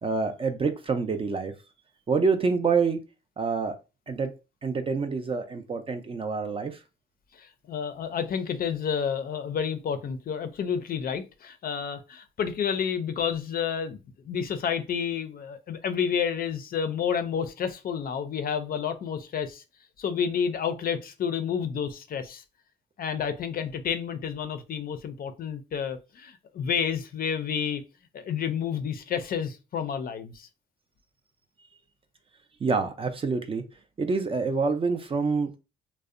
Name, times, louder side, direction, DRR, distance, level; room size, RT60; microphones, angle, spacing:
voice 1, 0.0-1.5 2.1-3.0 3.4-3.8 4.1-4.3 4.6-6.7 32.6-33.6 34.0-35.6, right 4 dB, 30° right, 7 dB, 0.4 m, -26 dB
voice 2, 7.4-14.0 14.2-19.6 20.0-22.4 23.0-27.8 28.1-30.5, left 7 dB, 50° left, 9 dB, 0.4 m, -30 dB
2.6 x 2.1 x 2.4 m, 0.29 s
cardioid pair, 90°, 20 cm